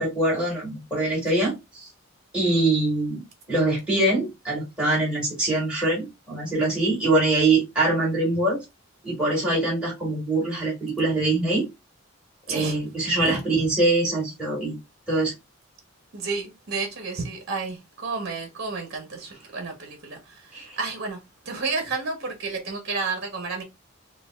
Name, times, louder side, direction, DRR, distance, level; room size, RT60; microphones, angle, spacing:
voice 1, 0.0-1.9 2.3-3.2 3.5-8.6 9.0-11.6 12.5-14.8 15.1-15.3 20.5-20.7, right 2 dB, 5° right, 2.1 m, -23 dB
voice 2, 16.1-21.2 21.4-23.6, right 4 dB, 50° right, 1.0 m, -31 dB
5.6 x 2.3 x 2.4 m
head